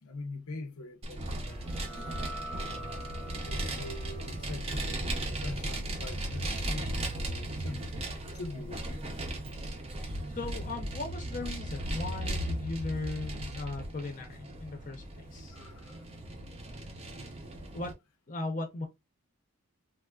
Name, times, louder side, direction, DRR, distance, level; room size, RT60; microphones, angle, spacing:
voice 1, 0.0-1.7 3.4-7.9 8.3-9.3 15.5-16.0, left 2 dB, 80° left, 0.7 m, -43 dB
Vehicle, 1.0-17.9, right 1 dB, 25° right, 0.5 m, -36 dB
sound 1, 1.5-8.7, equal, 5° left, 0.9 m, -48 dB
voice 2, 10.3-15.6 17.7-17.9 18.3-18.9, left 2 dB, 35° left, 0.6 m, -37 dB
3.4 x 2.4 x 2.3 m
head